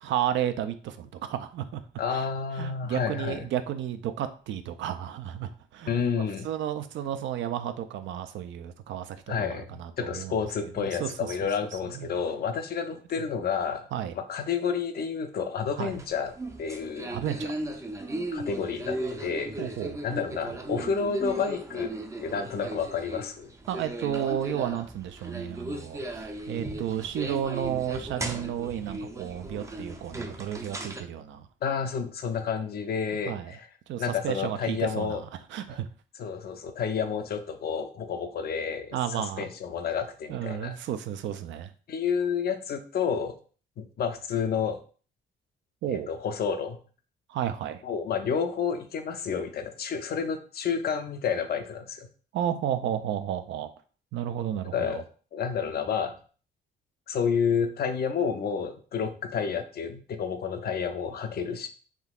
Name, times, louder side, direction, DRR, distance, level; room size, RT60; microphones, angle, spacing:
voice 1, 0.0-1.8 2.1-2.2 2.6-6.0 6.4-10.3 10.8-11.1 11.4-11.5 11.9-12.1 13.9-14.1 15.8-15.9 17.1-17.5 19.6-20.0 20.7-20.9 23.7-31.5 33.3-33.5 33.9-35.2 35.5-35.9 38.9-39.5 40.3-41.7 45.8-46.1 47.3-47.8 52.3-53.7 54.1-55.0, right 10 dB, 70° right, 9 dB, 0.4 m, -32 dB
voice 2, 2.0-3.5 5.9-6.5 9.3-13.9 14.2-16.3 16.6-17.1 18.3-19.5 20.0-21.9 22.2-23.5 31.6-33.7 34.0-35.2 35.7-35.8 36.2-40.7 41.9-43.4 43.8-44.8 45.9-46.8 47.8-52.1 54.7-55.0 55.3-56.1 57.1-61.7, left 6 dB, 55° left, 8 dB, 0.5 m, -30 dB
sound 1, 15.9-31.0, right 1 dB, 15° right, 0.4 m, -36 dB
3.6 x 2.7 x 2.3 m, 0.40 s
cardioid pair, 90°, 20 cm